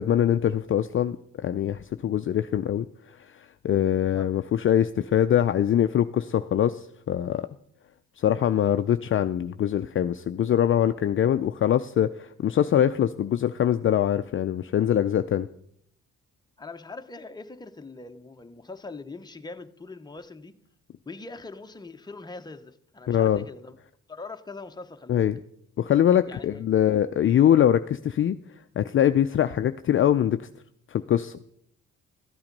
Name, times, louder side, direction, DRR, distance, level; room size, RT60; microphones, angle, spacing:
voice 1, 0.0-2.9 3.3-7.5 8.2-15.5 23.1-23.4 25.1-25.4 25.8-28.4 28.8-30.5 30.9-31.3, left 10 dB, 45° left, 0.5 m, -23 dB
voice 2, 16.6-20.5 21.1-23.8 24.1-25.3 26.3-26.6, left 3 dB, 15° left, 0.9 m, -42 dB
13.5 x 8.8 x 5.3 m
cardioid pair, 90°, 30 cm